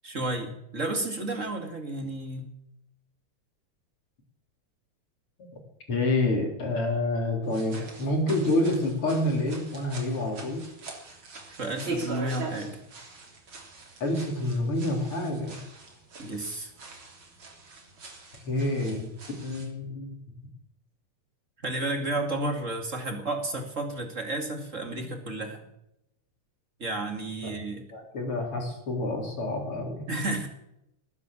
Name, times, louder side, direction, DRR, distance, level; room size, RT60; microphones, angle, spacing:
voice 1, 0.0-2.5 11.6-12.8 16.2-16.7 21.6-25.6 26.8-27.8 30.1-30.5, right 2 dB, 25° right, 4 dB, 2.2 m, -32 dB
voice 2, 5.9-10.6 14.0-15.6 18.5-19.1 19.4-20.1 27.4-27.5 27.9-30.0, left 2 dB, 45° left, 2 dB, 4.4 m, -28 dB
sound 1, 7.4-19.7, right 3 dB, 45° right, 4.0 m, -42 dB
19.5 x 9.5 x 7.3 m, 0.83 s
omnidirectional pair, 3.4 m